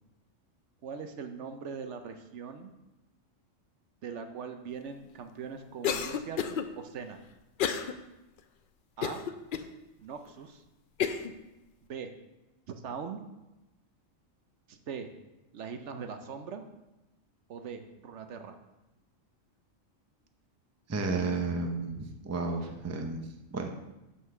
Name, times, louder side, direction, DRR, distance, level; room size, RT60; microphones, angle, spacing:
voice 1, 0.8-2.7 4.0-6.5 6.8-7.2 9.0-9.2 10.0-10.6 11.8-12.1 12.7-13.2 14.7-15.1 15.5-16.6 17.5-18.6, right 6 dB, 65° right, 7 dB, 0.9 m, -41 dB
Cough, 5.8-6.6 7.6-7.9 8.4-8.5 9.0-9.7 10.3-10.4 11.0-11.3, left 8 dB, 65° left, 0.5 m, -30 dB
voice 2, 20.9-23.7, right 3 dB, 20° right, 4 dB, 0.5 m, -32 dB
5.7 x 5.7 x 6.5 m, 1.0 s
omnidirectional pair, 1.4 m